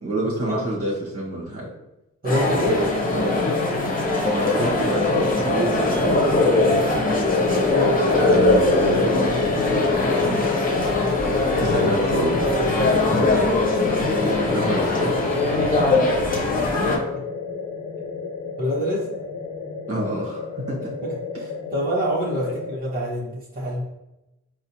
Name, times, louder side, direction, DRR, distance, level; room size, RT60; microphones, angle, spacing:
voice 1, 0.0-1.7 4.2-6.9 8.2-10.4 11.3-12.5 13.8-14.1 14.5-15.2 19.9-20.9 22.4-22.6, right 1 dB, 45° right, -6 dB, 1.3 m, -27 dB
sound 1, 2.2-17.0, left 2 dB, 25° left, 1.1 m, -21 dB
voice 2, 2.2-3.6 7.7-8.0 16.8-17.2 18.6-19.1 21.0-23.9, equal, 25° right, -6 dB, 1.2 m, -26 dB
sound 2, 7.2-22.8, left 6 dB, 55° left, 0.7 m, -30 dB
4.1 x 2.2 x 2.7 m, 0.92 s
supercardioid pair, 40°, 32 cm